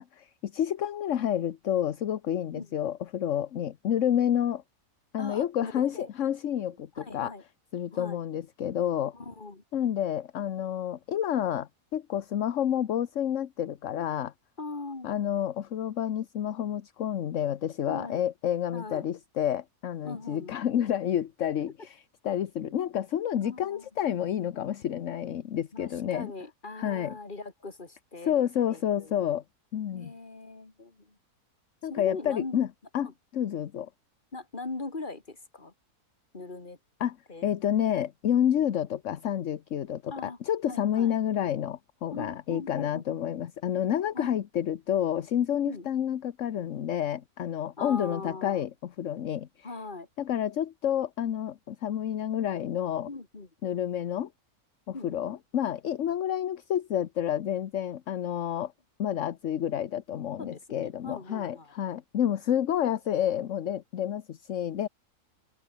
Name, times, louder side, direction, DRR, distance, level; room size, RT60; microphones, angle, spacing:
voice 1, 0.0-4.6 5.1-7.3 7.7-9.1 9.7-14.3 15.0-22.0 22.2-26.3 26.8-27.2 28.2-29.4 29.7-30.1 31.8-32.7 32.9-33.9 37.0-37.2 37.4-49.5 50.2-53.1 53.6-54.3 54.9-58.7 59.0-64.9, left 10 dB, 60° left, 1.2 m, -29 dB
voice 2, 5.2-6.1 6.9-7.4 7.9-8.2 9.1-9.6 14.6-15.1 17.9-18.2 18.7-19.0 20.0-20.9 22.7-22.8 23.4-23.9 25.7-28.3 28.7-29.3 29.9-31.2 31.9-32.6 33.0-33.1 34.3-35.7 36.3-36.8 37.3-37.4 38.5-38.6 40.1-40.4 40.7-41.1 42.1-43.2 44.1-44.3 45.6-45.9 47.8-48.6 49.6-50.1 53.1-53.7 54.9-55.2 60.4-61.7, left 3 dB, 30° left, 2.7 m, -41 dB
open air
omnidirectional pair, 1.6 m